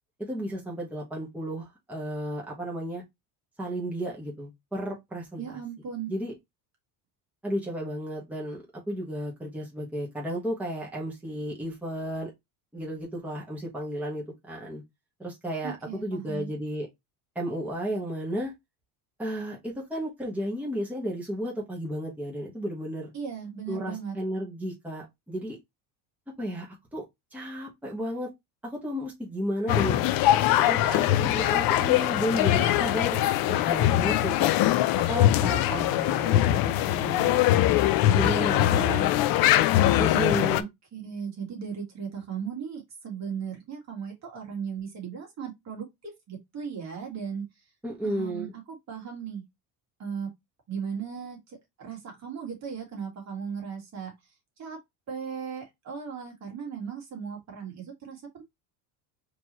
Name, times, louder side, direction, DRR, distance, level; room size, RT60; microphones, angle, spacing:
voice 1, 0.2-3.0 3.6-5.4 6.1-6.3 7.4-12.3 12.7-14.8 15.2-16.9 17.3-18.5 19.2-23.1 23.7-25.6 26.4-27.0 27.3-28.3 28.6-34.5 35.1-37.4 38.1-39.1 40.0-40.7 47.8-48.5, equal, 5° right, 1.4 m, -33 dB
voice 2, 5.4-6.1 15.6-16.5 23.1-24.2 38.0-38.3 38.6-39.1 40.1-47.5 48.0-49.4 50.0-50.3 50.7-54.1 54.6-54.8 55.1-58.4, right 7 dB, 40° right, 1.9 m, -37 dB
sound 1, 29.7-40.6, left 13 dB, 60° left, 0.6 m, -22 dB
4.4 x 3.1 x 3.0 m
cardioid pair, 125°, 41 cm